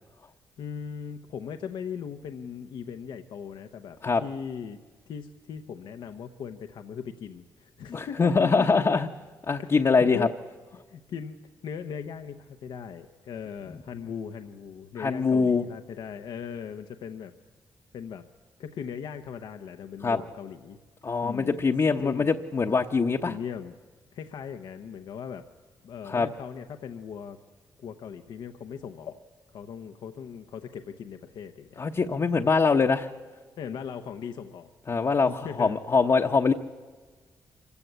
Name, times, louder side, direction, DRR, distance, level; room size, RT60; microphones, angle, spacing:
voice 1, 0.6-4.8 5.1-9.0 9.6-10.3 10.7-11.4 11.6-17.3 17.9-18.3 18.6-20.8 21.2-21.7 22.0-22.3 23.3-23.7 24.1-25.5 25.8-27.4 27.8-29.2 29.5-31.8 33.6-34.7 35.3-35.8, left 7 dB, 80° left, 7 dB, 0.9 m, -39 dB
voice 2, 7.9-9.1 9.5-10.3 15.0-15.6 20.0-20.2 21.0-23.3 26.1-26.3 31.8-33.1 34.9-36.5, left 4 dB, 45° left, 2 dB, 1.0 m, -23 dB
24.5 x 15.5 x 8.2 m, 1.4 s
cardioid pair, 65°, 8 cm